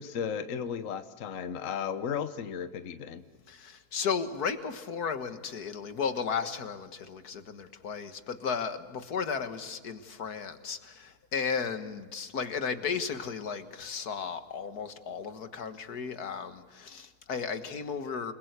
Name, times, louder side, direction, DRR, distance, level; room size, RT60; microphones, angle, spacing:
voice 1, 0.0-3.2, left 7 dB, 60° left, 11 dB, 1.3 m, -35 dB
voice 2, 3.5-18.3, left 6 dB, 85° left, 9 dB, 2.0 m, -34 dB
28.5 x 21.0 x 8.2 m, 1.4 s
omnidirectional pair, 1.6 m